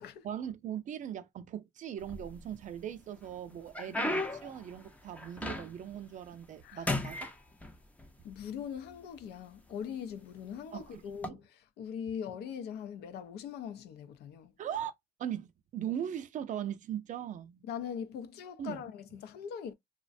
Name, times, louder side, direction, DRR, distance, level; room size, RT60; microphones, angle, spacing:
voice 1, 0.2-7.3 10.7-11.4 14.6-14.9 15.2-17.6 18.6-18.8, right 10 dB, 50° right, 0.5 m, -39 dB
sound 1, 2.0-2.7 3.2-6.0 6.3-6.6 6.9-8.1 8.9-9.0 9.7-9.9 11.1-11.3, left 1 dB, 10° left, 0.5 m, -36 dB
voice 2, 6.6-6.9 8.2-14.5 17.7-19.7, left 8 dB, 75° left, 0.5 m, -41 dB
2.4 x 2.1 x 2.4 m
cardioid pair, 110°, 17 cm